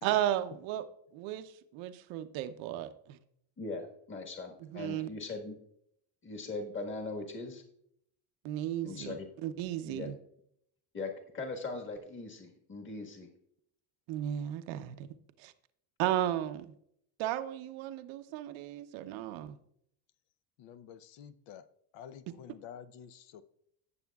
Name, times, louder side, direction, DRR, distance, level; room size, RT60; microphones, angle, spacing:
voice 1, 0.0-0.8 1.1-3.2 4.7-5.1 8.4-10.2 14.1-15.1 15.4-15.5 16.0-16.7 17.2-19.6, right 12 dB, 70° right, 11 dB, 0.9 m, -34 dB
voice 2, 3.6-5.6 6.2-7.6 8.8-9.3 9.9-10.1 10.9-13.3, left 3 dB, 25° left, 2 dB, 1.5 m, -40 dB
voice 3, 20.6-21.7 21.9-23.4, left 8 dB, 65° left, 13 dB, 0.8 m, -50 dB
17.0 x 6.9 x 2.3 m, 0.72 s
cardioid pair, 110°, 48 cm